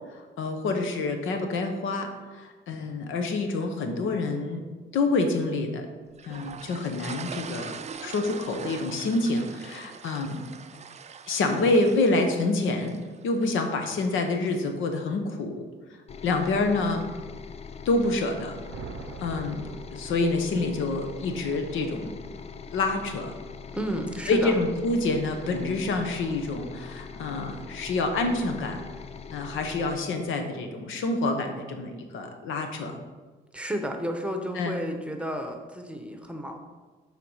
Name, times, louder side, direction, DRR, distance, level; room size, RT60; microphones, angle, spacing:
voice 1, 0.1-4.6 4.9-5.9 6.3-7.7 8.0-10.4 11.3-13.0 13.2-15.7 16.2-17.0 17.8-18.5 19.2-19.6 19.9-22.1 22.7-23.3 24.3-28.8 29.3-32.9 34.5-34.8, left 2 dB, 80° left, 5 dB, 1.0 m, -27 dB
sound 1, 6.2-13.5, right 6 dB, 35° right, 0.4 m, -42 dB
sound 2, 16.1-30.0, left 5 dB, 30° left, 0.5 m, -42 dB
sound 3, 18.7-20.8, right 6 dB, 80° right, 0.6 m, -43 dB
voice 2, 23.7-24.5 33.5-36.6, equal, 5° right, 4 dB, 0.9 m, -32 dB
7.5 x 3.8 x 5.6 m, 1.4 s
cardioid pair, 90°, 20 cm